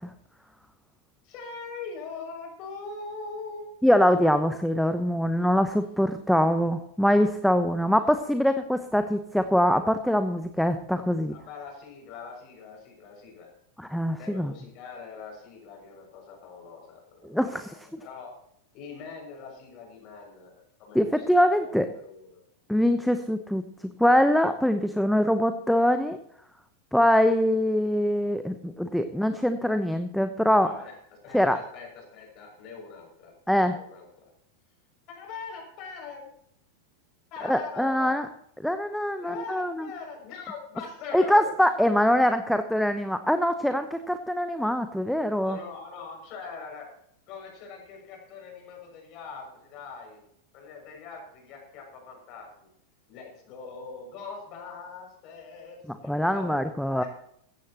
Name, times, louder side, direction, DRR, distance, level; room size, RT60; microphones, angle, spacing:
voice 1, 1.2-3.7 11.3-13.5 14.2-18.3 18.7-22.5 30.6-33.3 33.7-34.3 35.1-36.3 37.3-38.3 39.1-41.5 45.0-46.9 47.3-50.3 50.5-52.7 53.1-57.1, left 5 dB, 40° left, 1 dB, 6.6 m, -42 dB
voice 2, 3.8-11.3 13.8-14.5 17.2-17.8 20.9-21.9 22.7-23.6 24.0-26.2 26.9-30.7 31.3-31.6 33.5-33.8 37.5-38.3 38.6-39.9 41.1-45.6 56.0-57.0, equal, ahead, 9 dB, 0.9 m, -23 dB
16.5 x 14.5 x 3.0 m, 0.70 s
figure-of-eight pair, 90°, 0 cm